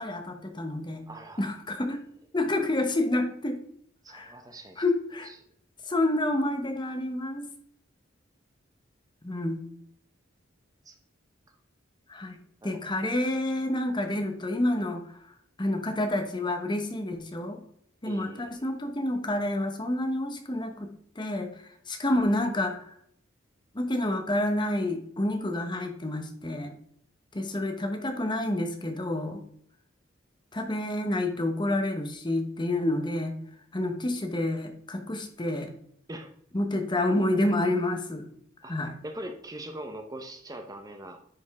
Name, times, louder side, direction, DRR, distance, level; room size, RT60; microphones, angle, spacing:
voice 1, 0.0-1.0 1.4-2.0 2.3-3.6 4.1-4.3 4.8-5.3 5.9-7.5 9.2-9.7 12.1-12.4 12.6-15.0 15.6-17.6 18.0-20.9 21.2-21.5 21.9-22.9 23.7-26.7 27.3-29.4 30.5-33.3 33.7-35.7 36.5-38.2 38.7-38.9, left 1 dB, 25° left, 6 dB, 1.0 m, -28 dB
voice 2, 1.1-1.6 4.0-4.8 5.2-5.4 10.8-11.0 12.6-12.8 18.0-18.7 27.3-27.4 36.1-36.3 38.6-38.7 39.0-41.2, right 1 dB, 20° right, 5 dB, 0.9 m, -42 dB
10.5 x 5.3 x 3.6 m, 0.67 s
head